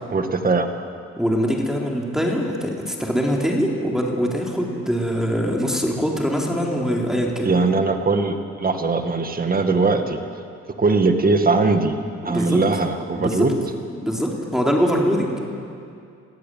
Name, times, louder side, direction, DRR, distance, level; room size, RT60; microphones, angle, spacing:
voice 1, 0.1-0.7 7.4-10.2 10.8-12.0 12.2-13.5, right 3 dB, 30° right, 6 dB, 1.9 m, -20 dB
voice 2, 1.2-7.5 12.3-12.6 13.1-13.5 14.0-15.4, equal, ahead, -1 dB, 3.6 m, -23 dB
22.5 x 15.0 x 9.4 m, 2.4 s
cardioid pair, 90°, 30 cm